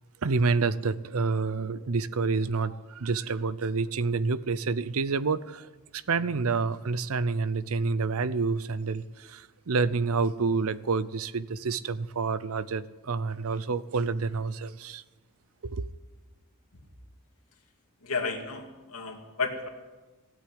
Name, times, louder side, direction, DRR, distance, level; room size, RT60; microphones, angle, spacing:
voice 1, 0.2-15.0 15.6-15.9, right 4 dB, 75° right, 0.6 m, -28 dB
voice 2, 18.0-19.7, left 4 dB, 80° left, 2.5 m, -32 dB
16.5 x 8.5 x 9.8 m
head